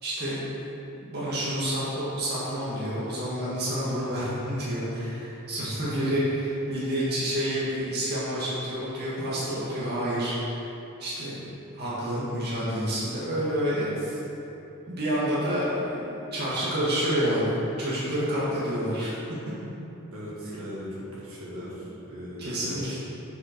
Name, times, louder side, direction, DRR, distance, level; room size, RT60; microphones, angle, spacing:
voice 1, 0.0-0.4 0.9-10.3 11.0-11.5 11.8-13.9 14.9-19.1 22.4-23.0, equal, 45° right, -8 dB, 1.6 m, -28 dB
voice 2, 13.6-14.2 20.1-22.8, equal, 65° right, -7 dB, 1.7 m, -39 dB
7.4 x 5.2 x 4.5 m, 3.0 s
head